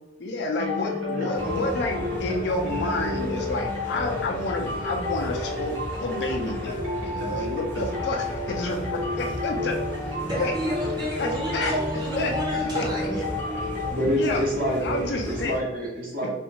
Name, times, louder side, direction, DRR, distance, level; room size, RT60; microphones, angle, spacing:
voice 1, 0.2-9.8 10.4-10.5 11.2-11.7 12.2-12.3 12.7-12.8 14.2-14.4 14.8-15.5, left 2 dB, 60° left, 1 dB, 0.4 m, -29 dB
sound 1, 0.6-13.9, left 2 dB, 75° right, 0.8 m, -31 dB
voice 2, 1.1-1.6 13.9-16.4, equal, 50° right, -4 dB, 0.9 m, -27 dB
sound 2, 1.3-15.6, equal, 15° left, 0.6 m, -35 dB
voice 3, 10.2-13.2, equal, 20° right, -5 dB, 0.8 m, -30 dB
2.5 x 2.2 x 2.8 m, 1.0 s
head